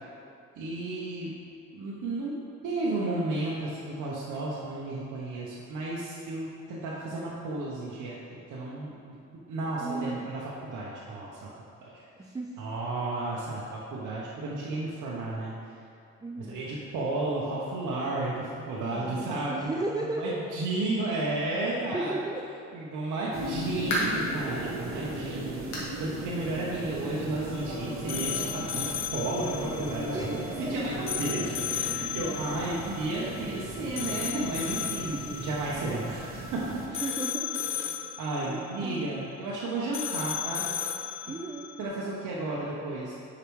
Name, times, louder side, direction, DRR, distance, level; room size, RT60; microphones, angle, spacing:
voice 1, 0.6-1.3 1.7-2.3 2.6-8.2 8.5-9.2 9.5-11.5 11.8-12.1 12.6-15.5 16.4-19.8 20.0-22.1 22.7-30.1 30.7-37.1 38.2-40.7 41.8-43.1, right 2 dB, 80° right, -6 dB, 0.9 m, -33 dB
voice 2, 9.8-10.3 12.3-12.5 16.2-16.7 18.9-20.4 21.9-22.4 30.1-30.7 35.1-35.5 37.0-37.5 38.5-39.2 41.3-41.7, right 2 dB, 15° right, -1 dB, 0.4 m, -35 dB
sound 1, 23.3-36.9, right 1 dB, 45° right, 1.0 m, -37 dB
sound 2, 23.9-24.3 24.8-24.9 25.7-26.0 26.3-26.4 26.9-27.0 28.1-28.2, equal, 80° left, 1.5 m, -31 dB
sound 3, 27.5-41.9, left 9 dB, 45° left, 0.5 m, -36 dB
6.6 x 4.9 x 3.1 m, 2.5 s
cardioid pair, 90°, 30 cm